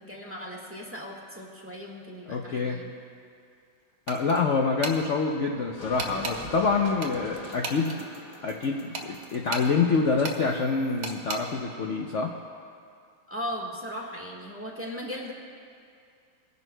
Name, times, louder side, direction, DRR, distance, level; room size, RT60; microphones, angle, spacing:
voice 1, 0.0-2.9 13.3-15.3, equal, 10° right, -2 dB, 1.2 m, -37 dB
voice 2, 2.3-2.8 4.1-8.0 8.4-12.3, left 4 dB, 70° left, 1 dB, 0.7 m, -26 dB
sound 1, 4.1-4.4 4.8-5.0 6.0-6.4 7.0-8.0 8.9-9.7 10.2-10.4 11.0-11.4, right 4 dB, 65° right, 1.4 m, -34 dB
sound 2, 5.8-11.2, left 1 dB, 40° left, 1.5 m, -44 dB
24.0 x 10.5 x 2.2 m, 2.3 s
omnidirectional pair, 2.0 m